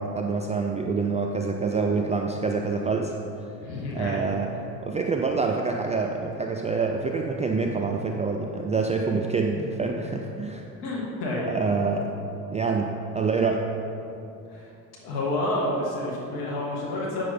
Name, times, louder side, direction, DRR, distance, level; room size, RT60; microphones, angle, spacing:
voice 1, 0.0-3.2 3.9-4.5 4.8-10.6 11.5-12.1 12.5-13.6, right 4 dB, 15° right, 1 dB, 0.3 m, -26 dB
voice 2, 3.6-4.2 10.8-11.4 14.4-14.7 15.0-17.2, left 1 dB, 70° left, -4 dB, 1.9 m, -29 dB
8.5 x 6.4 x 4.3 m, 2.8 s
hypercardioid pair, 65°, 49 cm